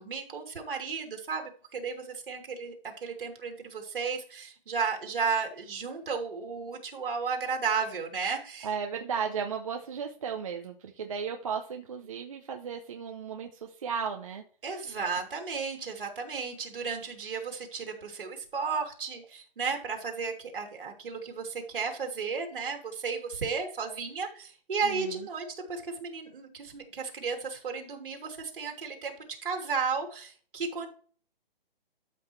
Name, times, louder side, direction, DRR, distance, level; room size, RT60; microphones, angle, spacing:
voice 1, 0.0-2.7 3.0-8.7 14.6-30.9, right 5 dB, 65° right, 3 dB, 3.0 m, -34 dB
voice 2, 8.6-14.4 24.8-25.3, right 6 dB, 35° right, 3 dB, 0.7 m, -35 dB
12.5 x 5.9 x 3.2 m, 0.43 s
hypercardioid pair, 170°, 29 cm